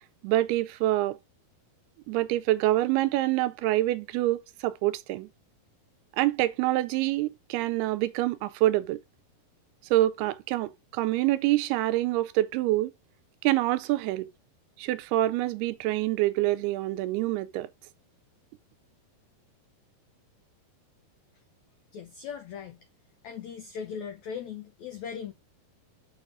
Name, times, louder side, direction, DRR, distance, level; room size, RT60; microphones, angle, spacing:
voice 1, 0.2-1.2 2.1-5.3 6.2-9.0 9.9-12.9 13.4-14.3 14.8-17.7, right 16 dB, 85° right, 2.6 m, -26 dB
voice 2, 21.9-22.8 23.2-25.3, left 7 dB, 80° left, 1.6 m, -38 dB
7.0 x 6.0 x 4.8 m
omnidirectional pair, 4.5 m